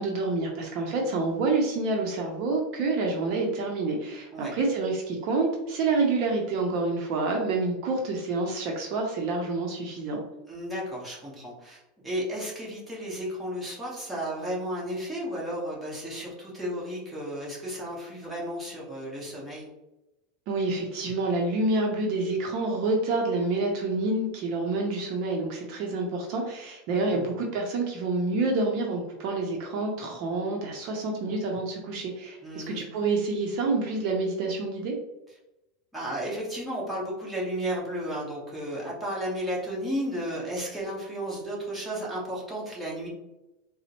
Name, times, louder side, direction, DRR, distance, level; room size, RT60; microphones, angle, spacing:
voice 1, 0.0-10.2 20.5-34.9, right 3 dB, 50° right, 0 dB, 0.6 m, -28 dB
voice 2, 10.5-19.7 27.1-27.3 32.4-32.8 35.9-43.1, equal, 5° right, -6 dB, 1.1 m, -33 dB
4.0 x 2.0 x 2.9 m, 0.95 s
supercardioid pair, 145°, 0 cm